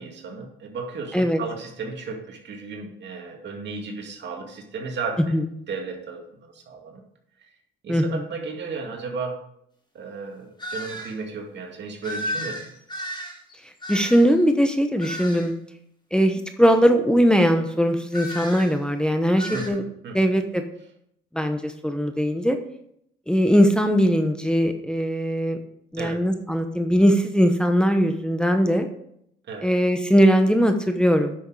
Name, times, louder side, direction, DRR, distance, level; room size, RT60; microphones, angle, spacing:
voice 1, 0.0-5.4 5.7-7.0 7.8-9.4 9.9-12.7 19.5-20.3 26.0-26.2 29.5-29.7, right 4 dB, 60° right, 2 dB, 2.3 m, -34 dB
voice 2, 7.9-8.2 13.9-15.5 16.1-19.8 20.1-20.6 21.3-22.6 23.3-25.6 25.9-28.9 29.6-31.3, equal, 5° left, 6 dB, 1.0 m, -20 dB
sound 1, 10.6-11.1 12.0-14.4 15.0-15.5 18.1-18.8 19.4-19.7, equal, 25° left, 4.0 m, -33 dB
10.0 x 6.3 x 4.8 m, 0.72 s
cardioid pair, 90°, 20 cm